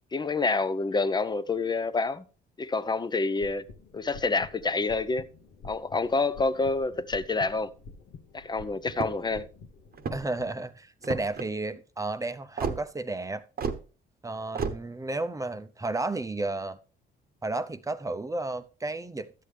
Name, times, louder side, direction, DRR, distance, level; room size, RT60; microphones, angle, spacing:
voice 1, 0.1-2.2 2.6-3.6 3.9-5.2 5.6-7.7 8.3-9.5, left 3 dB, 20° left, 0.7 m, -27 dB
sound 1, 3.4-10.5, left 4 dB, 75° left, 1.2 m, -48 dB
sound 2, 8.9-9.3 9.9-10.4 11.0-11.5 12.6-12.8 13.6-13.8 14.6-14.8, right 6 dB, 50° right, 1.1 m, -31 dB
voice 2, 10.1-13.4 14.2-16.8 17.4-19.3, right 2 dB, 15° right, 0.7 m, -32 dB
12.5 x 8.3 x 3.3 m
cardioid pair, 90°, 20 cm